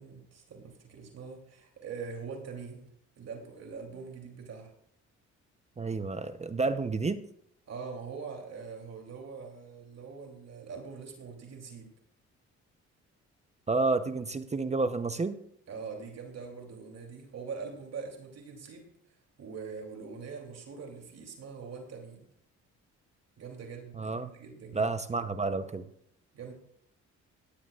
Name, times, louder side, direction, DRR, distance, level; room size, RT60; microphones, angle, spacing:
voice 1, 0.0-2.9 3.2-4.7 7.7-11.9 15.7-22.3 23.4-24.9 26.3-26.5, right 5 dB, 60° right, 1 dB, 3.0 m, -43 dB
voice 2, 5.8-7.2 13.7-15.4 24.0-24.3 24.7-25.8, right 3 dB, 20° right, 10 dB, 0.7 m, -30 dB
17.5 x 11.0 x 2.4 m, 0.68 s
cardioid pair, 90°, 30 cm